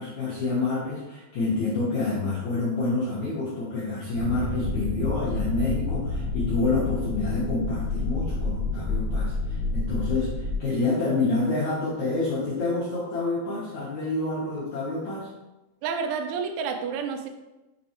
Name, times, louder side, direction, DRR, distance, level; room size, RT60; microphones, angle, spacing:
voice 1, 0.0-10.3 10.6-15.3, left 3 dB, 75° left, -9 dB, 1.7 m, -28 dB
sound 1, 4.1-10.5, left 3 dB, 55° right, 1.9 m, -29 dB
voice 2, 15.8-17.3, right 6 dB, 85° right, 5 dB, 3.0 m, -29 dB
6.9 x 3.8 x 4.5 m, 1.0 s
omnidirectional pair, 5.5 m